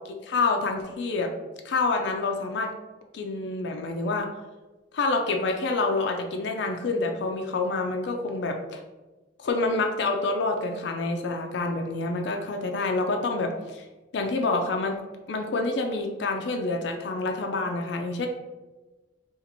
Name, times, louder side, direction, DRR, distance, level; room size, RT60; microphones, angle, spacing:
voice 1, 0.0-1.3 1.6-2.7 3.1-4.3 4.9-8.8 9.4-13.8 14.1-15.0 15.3-18.3, left 3 dB, 70° left, 3 dB, 0.4 m, -27 dB
2.9 x 2.5 x 3.9 m, 1.2 s
head